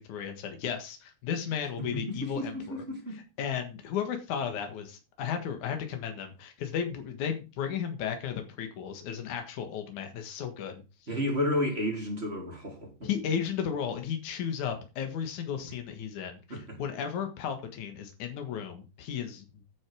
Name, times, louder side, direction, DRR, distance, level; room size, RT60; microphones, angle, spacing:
voice 1, 0.0-2.8 3.1-10.8 13.0-19.4, left 8 dB, 80° left, 3.0 m, -34 dB
voice 2, 1.9-3.2 11.1-13.1 16.5-16.8, left 1 dB, 20° right, 3.8 m, -32 dB
9.8 x 6.2 x 6.2 m
omnidirectional pair, 3.4 m